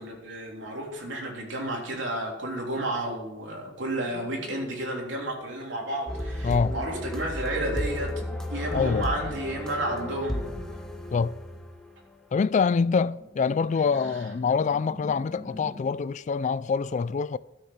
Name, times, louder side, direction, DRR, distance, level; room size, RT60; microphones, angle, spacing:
voice 1, 0.0-8.1 8.5-10.5, right 1 dB, 75° right, 3.4 m, -31 dB
sound 1, 4.0-4.8 6.5-11.0 12.5-16.0, left 1 dB, 55° right, 5.2 m, -47 dB
sound 2, 6.1-12.1, left 1 dB, 5° left, 1.0 m, -33 dB
voice 2, 6.4-6.7 8.7-9.1 11.1-11.4 12.3-17.4, left 5 dB, 40° left, 0.3 m, -25 dB
12.5 x 6.7 x 7.3 m
head